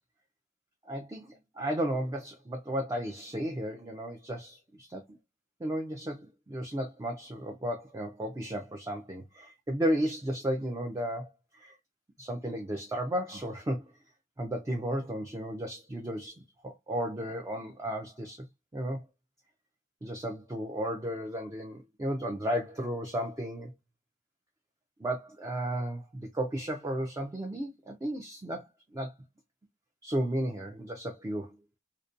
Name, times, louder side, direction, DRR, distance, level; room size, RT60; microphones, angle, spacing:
voice 1, 0.9-5.0 5.6-11.8 12.2-13.9 14.4-18.5 18.7-19.0 20.0-23.7 25.0-28.6 28.9-29.1 30.0-31.5, equal, 15° right, 0.3 m, -34 dB
2.5 x 2.1 x 2.5 m
head